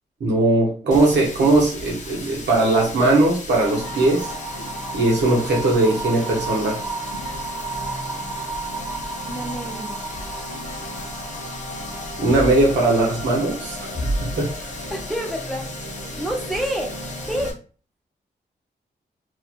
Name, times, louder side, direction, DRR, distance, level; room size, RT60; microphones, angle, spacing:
voice 1, 0.2-4.3 4.9-6.8 12.2-14.7, right 2 dB, 85° right, -2 dB, 1.0 m, -19 dB
Water tap faucet, 0.9-17.5, left 2 dB, 45° left, 0.7 m, -37 dB
sound 1, 3.5-17.5, right 2 dB, 25° right, 1.3 m, -32 dB
voice 2, 9.3-10.0 14.9-15.7 16.2-16.9 17.2-17.6, equal, ahead, 0 dB, 0.6 m, -28 dB
3.1 x 2.2 x 2.4 m, 0.38 s
wide cardioid pair, 95°, 18 cm